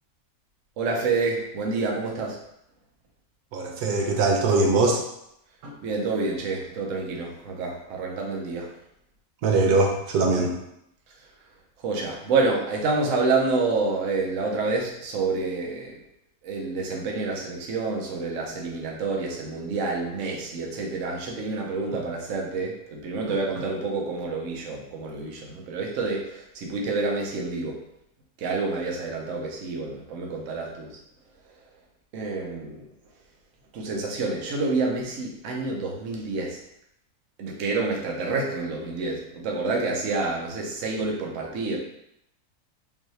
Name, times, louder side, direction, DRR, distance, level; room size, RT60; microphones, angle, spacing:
voice 1, 0.8-2.4 5.6-8.7 11.8-15.9 16.4-26.2 26.5-27.7 28.4-30.9 32.1-32.8 33.7-36.6 37.4-41.8, right 3 dB, 60° right, -1 dB, 1.1 m, -28 dB
voice 2, 3.5-5.0 9.4-10.6, right 3 dB, 85° right, 1 dB, 1.2 m, -21 dB
5.3 x 2.6 x 3.2 m, 0.79 s
omnidirectional pair, 1.6 m